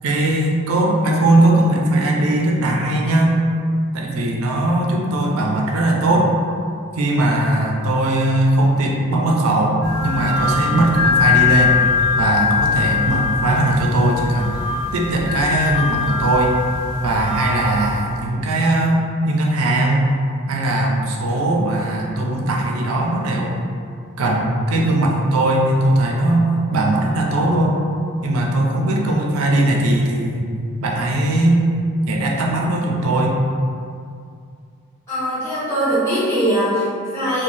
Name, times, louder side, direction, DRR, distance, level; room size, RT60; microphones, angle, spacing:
voice 1, 0.0-3.4 3.9-6.3 7.0-11.8 12.2-14.6 14.9-16.6 17.0-20.1 20.5-23.6 24.2-27.8 28.2-30.5 30.8-31.6 32.1-33.4, right 1 dB, 80° right, 0 dB, 0.4 m, -19 dB
sound 1, 9.8-18.2, left 5 dB, 45° left, 0.8 m, -21 dB
voice 2, 35.1-37.4, right 1 dB, 15° left, -14 dB, 1.1 m, -21 dB
2.5 x 2.1 x 3.2 m, 2.3 s
head